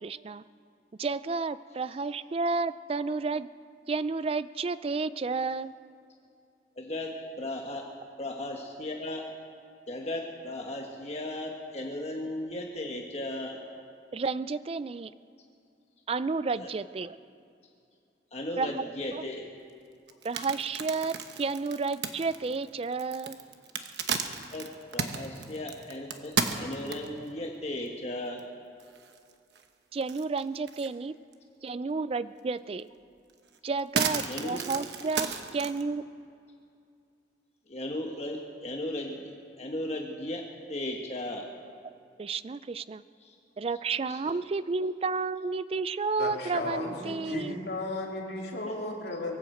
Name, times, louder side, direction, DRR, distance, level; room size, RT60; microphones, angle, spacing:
voice 1, 0.0-0.4 1.0-3.5 3.9-5.7 14.1-15.1 16.1-17.2 18.6-19.2 20.2-23.4 29.9-31.1 31.6-32.9 33.6-36.0 42.2-43.0 43.6-47.6, right 4 dB, 35° right, 16 dB, 0.3 m, -31 dB
voice 2, 6.8-7.9 8.2-9.2 9.9-13.6 16.6-16.7 18.3-19.5 24.5-28.4 34.2-34.6 37.7-40.4 40.7-41.4 43.2-43.4 44.1-44.4, left 1 dB, 35° left, 0 dB, 1.2 m, -36 dB
sound 1, 20.1-27.3 27.9-28.0 28.4-28.5 28.8-29.6 30.0-31.0 31.3-31.4 32.8-32.9 33.3-35.8, right 6 dB, 70° right, 1.0 m, -33 dB
voice 3, 46.2-49.4, left 2 dB, 65° left, -2 dB, 2.8 m, -35 dB
23.5 x 7.9 x 7.8 m, 2.5 s
head